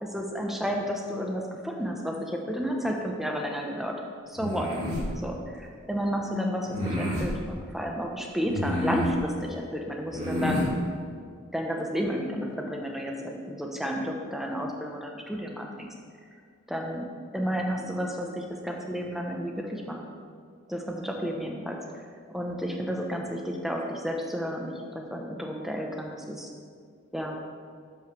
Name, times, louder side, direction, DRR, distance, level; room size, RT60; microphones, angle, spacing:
voice 1, 0.0-3.9 4.3-4.7 5.2-10.6 11.5-15.9 16.7-17.1 17.3-20.0 20.7-26.5 27.1-27.4, equal, ahead, 1 dB, 0.8 m, -32 dB
sound 1, 4.4-5.1 6.7-7.3 8.4-9.2 10.1-10.7, left 1 dB, 35° right, 2.3 m, -29 dB
7.2 x 5.8 x 6.0 m, 2.1 s
head